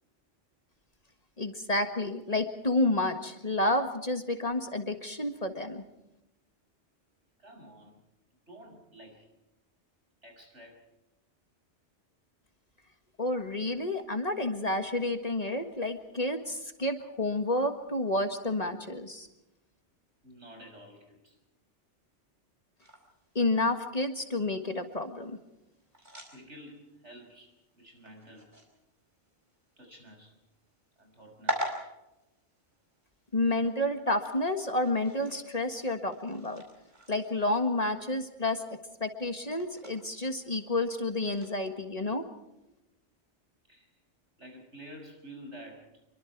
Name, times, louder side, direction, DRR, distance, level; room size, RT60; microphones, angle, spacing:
voice 1, 1.4-5.8 13.2-19.3 23.3-25.4 33.3-36.6 37.1-42.3, left 2 dB, 35° left, 7 dB, 1.7 m, -30 dB
voice 2, 7.4-8.0 8.5-9.3 10.2-10.8 13.7-13.8 20.2-21.4 26.0-28.5 29.8-30.3 31.0-31.7 41.0-41.2 43.7-43.9 44.4-45.9, equal, 75° right, 2 dB, 6.5 m, -50 dB
sound 1, 22.8-41.6, equal, 40° right, 5.0 m, -45 dB
26.5 x 23.5 x 4.6 m, 0.93 s
omnidirectional pair, 1.2 m